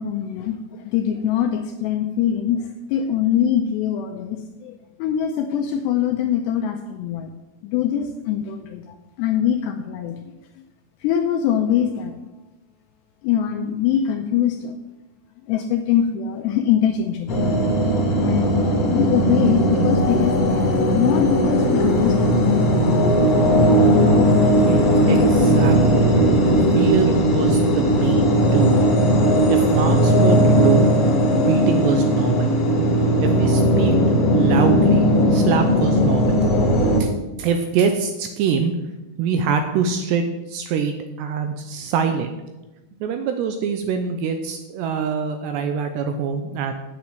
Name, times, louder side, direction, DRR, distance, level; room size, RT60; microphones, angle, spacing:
voice 1, 0.0-7.3 7.6-10.2 11.0-12.2 13.2-14.8 15.5-17.5 18.2-20.7 20.9-22.8, left 9 dB, 80° left, 5 dB, 2.5 m, -23 dB
sound 1, 17.3-37.0, equal, 55° left, 1.8 m, -17 dB
voice 2, 24.7-26.1 26.8-28.8 29.5-30.9 31.3-32.5 33.2-34.0 34.3-36.4 37.0-37.1 37.4-38.7 39.2-42.3 43.0-46.7, right 6 dB, 80° right, 6 dB, 2.6 m, -24 dB
9.6 x 7.0 x 7.8 m, 1.1 s
omnidirectional pair, 5.5 m